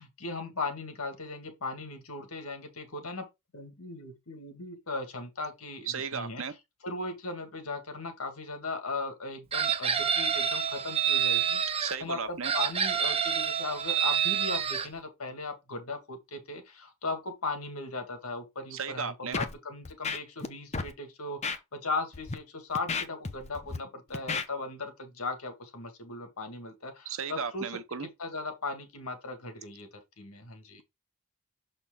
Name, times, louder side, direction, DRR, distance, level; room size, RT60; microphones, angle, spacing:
voice 1, 0.0-3.3 3.5-6.4 6.8-27.7 28.2-29.9 30.2-30.8, left 3 dB, 75° left, 1.7 m, -38 dB
voice 2, 5.9-6.5 11.8-12.5 18.7-19.4 27.0-28.1, right 6 dB, 65° right, 0.9 m, -35 dB
Chicken rooster, 9.5-11.9 12.4-14.9, right 8 dB, 25° right, 0.6 m, -28 dB
Scratching (performance technique), 19.3-19.5 19.9-20.5 20.7-20.9 21.4-21.6 22.1-22.3 22.8-23.8 24.1-24.5, left 4 dB, 30° left, 0.7 m, -32 dB
6.6 x 4.4 x 3.7 m
head